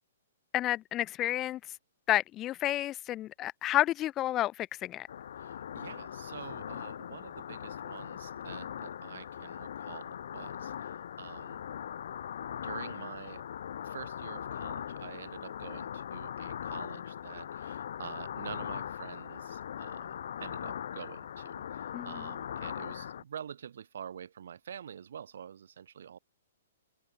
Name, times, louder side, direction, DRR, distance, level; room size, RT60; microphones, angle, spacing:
voice 1, 0.5-1.6 2.1-5.1 21.9-22.3, left 14 dB, 20° left, 0.3 m, -30 dB
sound 1, 5.1-23.2, left 9 dB, 60° left, 0.9 m, -40 dB
voice 2, 5.4-11.6 12.6-13.4 13.8-26.2, right 8 dB, 65° right, 0.6 m, -47 dB
hypercardioid pair, 170°, 0 cm